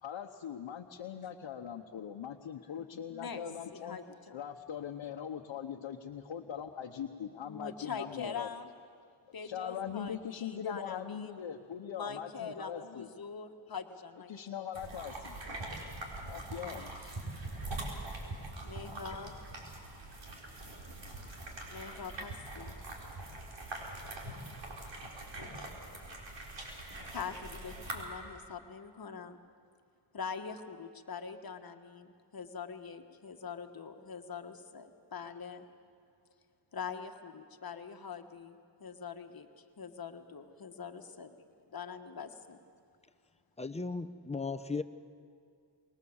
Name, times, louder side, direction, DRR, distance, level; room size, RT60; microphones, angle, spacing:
voice 1, 0.0-4.0 4.3-8.5 9.4-13.1 14.3-15.4 16.2-16.8, left 8 dB, 80° left, 1 dB, 1.1 m, -41 dB
voice 2, 3.1-3.4 3.7-4.4 7.4-8.7 9.3-11.4 11.9-14.3 16.5-17.2 18.6-19.3 21.7-22.8 25.3-25.7 27.1-29.4 30.1-35.7 36.7-42.6, left 6 dB, 50° left, 6 dB, 1.5 m, -44 dB
sound 1, 14.7-28.0, right 2 dB, 75° right, 4.5 m, -43 dB
voice 3, 43.6-44.8, left 4 dB, 15° left, 8 dB, 0.9 m, -36 dB
24.5 x 21.0 x 7.2 m, 2.4 s
cardioid pair, 80°, 45 cm